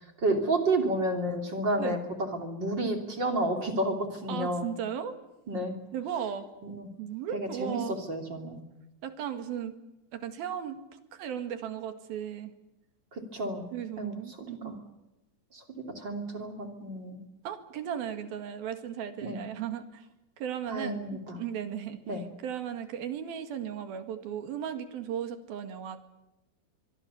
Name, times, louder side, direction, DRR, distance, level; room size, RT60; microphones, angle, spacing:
voice 1, 0.2-2.0 2.3-4.6 5.5-5.7 6.6-6.9 7.3-7.8 8.1-8.6 13.1-13.6 14.0-14.7 15.5-15.6 15.9-17.2 19.2-19.4 20.7-21.4 22.1-22.2, right 1 dB, 30° right, 5 dB, 3.0 m, -31 dB
voice 2, 4.3-5.2 5.9-6.5 7.0-8.0 9.0-9.8 10.1-10.8 11.1-12.5 13.7-14.8 17.4-20.1 20.4-26.0, right 9 dB, 65° right, 9 dB, 3.5 m, -36 dB
24.5 x 23.5 x 7.0 m, 0.97 s
omnidirectional pair, 5.0 m